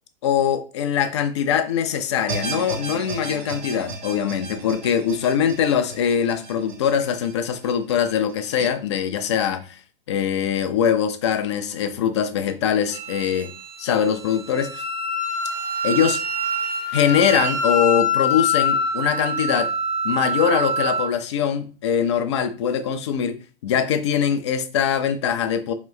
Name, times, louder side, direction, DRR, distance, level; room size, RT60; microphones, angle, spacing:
voice 1, 0.2-9.8 10.1-13.5 13.8-14.8 15.8-16.2 16.9-19.7 20.0-25.7, left 8 dB, 30° left, 0.4 m, -22 dB
sound 1, 2.3-8.7, right 4 dB, 45° right, 1.1 m, -35 dB
Wind instrument woodwind instrument, 12.9-21.1, left 1 dB, 20° right, 0.6 m, -25 dB
3.8 x 2.9 x 3.1 m
figure-of-eight pair, 110°, 31 cm